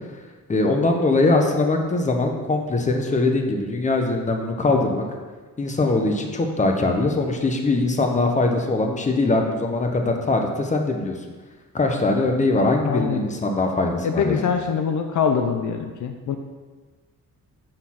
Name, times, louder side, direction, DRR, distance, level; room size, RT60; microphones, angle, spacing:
voice 1, 0.5-5.0 5.6-11.1 11.7-14.4, left 2 dB, 20° left, 3 dB, 0.8 m, -21 dB
voice 2, 12.8-13.2 14.0-16.4, left 6 dB, 65° left, 6 dB, 0.6 m, -24 dB
6.4 x 3.9 x 5.8 m, 1.4 s
cardioid pair, 120°, 33 cm